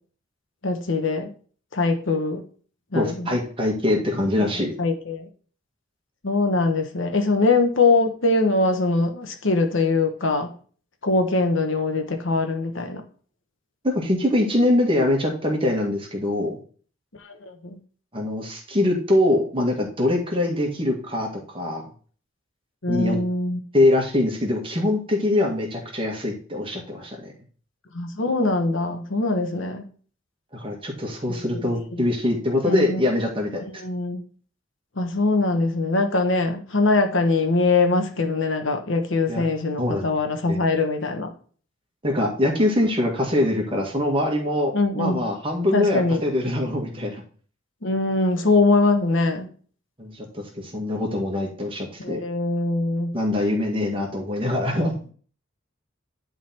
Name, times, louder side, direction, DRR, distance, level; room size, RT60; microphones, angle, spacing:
voice 1, 0.6-1.3 1.7-2.4 2.9-3.4 4.3-4.4 4.8-5.3 6.2-10.5 11.0-13.0 17.2-17.8 22.8-23.6 27.9-29.9 32.0-32.1 32.7-33.0 33.6-34.2 35.0-41.3 44.7-45.2 45.7-46.2 47.8-49.5 52.0-53.1, left 3 dB, 65° left, 6 dB, 1.2 m, -22 dB
voice 2, 2.9-4.7 13.8-16.6 18.1-21.9 22.9-23.2 23.7-27.3 30.5-33.6 39.3-39.4 39.8-40.1 40.5-40.6 42.0-47.2 50.0-52.2 53.1-55.0, left 1 dB, 25° right, 1 dB, 1.9 m, -23 dB
10.5 x 4.0 x 4.4 m, 0.42 s
head